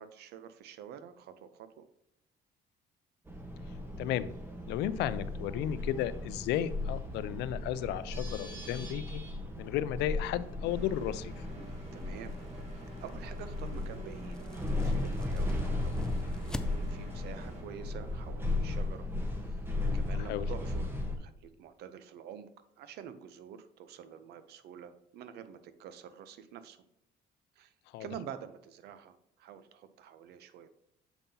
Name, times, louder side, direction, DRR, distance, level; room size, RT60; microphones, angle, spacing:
voice 1, 0.0-1.9 11.9-12.3 12.7-16.1 16.4-19.1 19.5-19.6 19.9-22.5 22.8-26.8 27.6-27.7 28.0-30.7, right 8 dB, 75° right, 11 dB, 0.7 m, -48 dB
sound 1, 3.3-21.2, left 2 dB, 15° right, 1.1 m, -36 dB
voice 2, 4.0-4.3 4.7-9.2 9.6-11.4 20.1-20.4 27.9-28.1, left 11 dB, 85° left, 15 dB, 0.4 m, -34 dB
Engine, 10.7-17.6, right 1 dB, 40° right, 1.9 m, -52 dB
sound 2, 11.6-17.2, left 1 dB, 5° left, 0.4 m, -48 dB
7.0 x 5.4 x 2.8 m, 0.81 s
cardioid pair, 110°, 17 cm